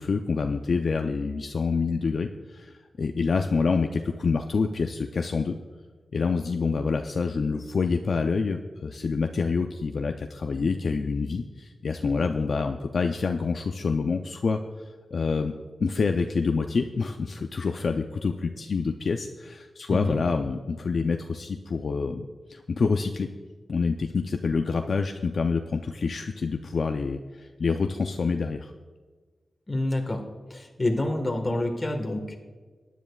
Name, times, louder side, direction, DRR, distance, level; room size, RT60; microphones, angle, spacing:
voice 1, 0.0-5.6 6.1-15.5 15.8-23.3 23.7-28.7, left 4 dB, 55° left, 5 dB, 0.5 m, -27 dB
voice 2, 29.7-30.2 30.5-32.4, left 1 dB, 25° left, 4 dB, 1.5 m, -27 dB
19.5 x 10.0 x 2.4 m, 1.4 s
wide cardioid pair, 125°, 0 cm